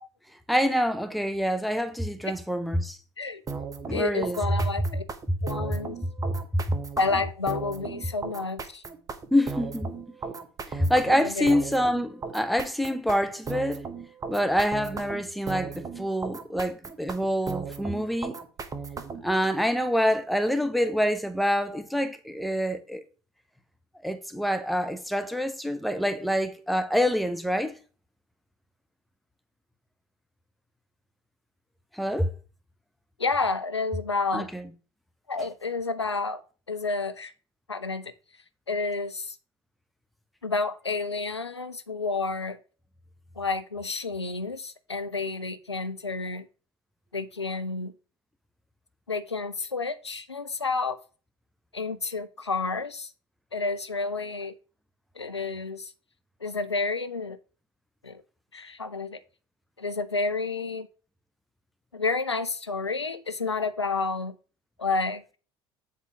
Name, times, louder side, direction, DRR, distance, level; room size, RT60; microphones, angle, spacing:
voice 1, 0.5-3.0 3.9-4.4 6.2-6.6 9.3-9.9 10.7-13.8 14.3-18.4 19.2-23.0 24.0-27.8 31.9-32.3 34.3-34.7, equal, ahead, 0.8 m, -26 dB
sound 1, 3.5-19.3, right 5 dB, 25° right, 1.0 m, -37 dB
voice 2, 3.9-5.0 5.4-6.0 7.0-8.8 11.1-11.6 33.2-34.5 35.3-36.4 36.7-37.3 37.7-38.1 38.7-39.4 40.4-42.6 43.4-46.4 47.1-47.9 49.1-51.0 51.7-53.1 53.5-54.5 55.2-55.9 56.4-57.4 58.0-58.2 58.5-59.2 59.8-60.9 61.9-64.3 64.8-65.4, left 4 dB, 85° left, 0.5 m, -30 dB
7.4 x 4.0 x 4.6 m
figure-of-eight pair, 65°, 14 cm